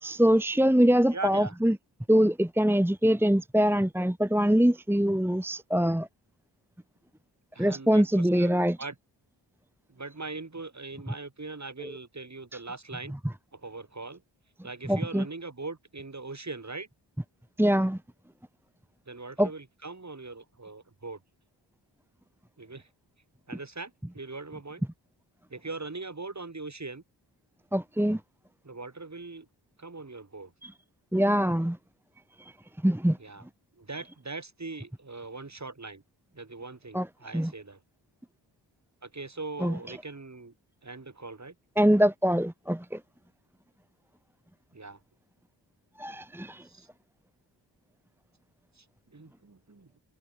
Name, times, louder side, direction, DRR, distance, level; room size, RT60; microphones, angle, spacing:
voice 1, 0.0-1.7 2.1-6.1 7.6-8.8 11.8-11.9 14.9-15.2 17.6-18.0 19.4-19.5 27.7-28.2 30.6-30.7 31.1-31.8 32.4-32.5 32.8-33.2 36.9-37.1 37.3-37.5 39.6-39.7 41.8-43.0 46.0-46.6, equal, 5° right, 1.3 m, -23 dB
voice 2, 1.1-1.6 7.5-9.0 9.9-13.1 13.5-14.2 14.6-16.9 19.1-21.2 22.6-22.9 23.5-24.8 25.5-27.0 28.6-29.5 29.8-30.5 33.2-33.4 33.8-36.0 36.3-37.8 39.0-40.5 40.8-41.5 44.7-45.0 46.6-46.9 48.8-48.9 49.1-49.9, right 3 dB, 40° right, 7.5 m, -41 dB
wide cardioid pair, 100°, 44 cm